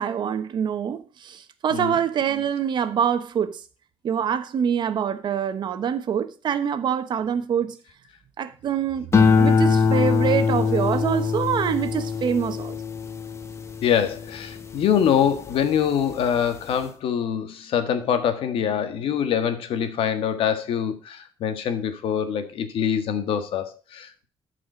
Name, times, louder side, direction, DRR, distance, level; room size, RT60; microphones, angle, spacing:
voice 1, 0.0-3.6 4.0-7.8 8.4-9.1 9.3-12.8, right 8 dB, 50° right, 1.1 m, -25 dB
sound 1, 9.1-15.6 16.1-16.6, left 5 dB, 30° left, 1.0 m, -23 dB
voice 2, 13.8-24.2, left 8 dB, 70° left, 1.5 m, -24 dB
12.5 x 5.0 x 5.0 m
cardioid pair, 120°, 10 cm